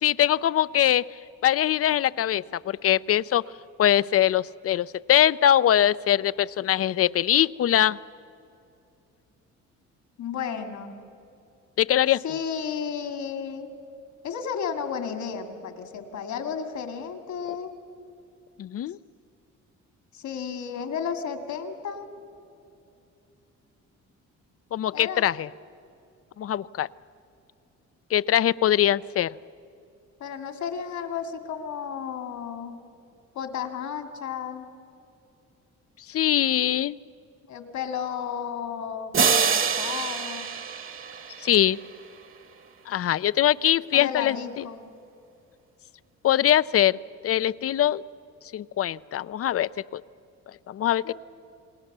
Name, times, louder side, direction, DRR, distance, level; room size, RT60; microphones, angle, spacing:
voice 1, 0.0-1.1 1.4-3.4 3.8-8.0 11.8-12.2 18.6-19.0 24.7-25.5 26.4-26.9 28.1-29.3 36.1-37.0 41.4-41.8 42.9-44.7 46.2-47.0 47.2-48.0 48.5-50.0 50.7-51.1, left 11 dB, 50° left, 18 dB, 0.5 m, -22 dB
voice 2, 10.2-11.0 12.2-13.7 14.2-17.7 20.1-22.1 24.9-25.2 30.2-32.8 33.3-34.7 37.5-40.5 43.9-44.9 51.0-51.1, left 7 dB, 70° left, 7 dB, 2.4 m, -33 dB
sound 1, 39.1-41.8, right 6 dB, 45° right, 1.4 m, -25 dB
28.5 x 20.0 x 6.8 m, 2.6 s
cardioid pair, 90°, 30 cm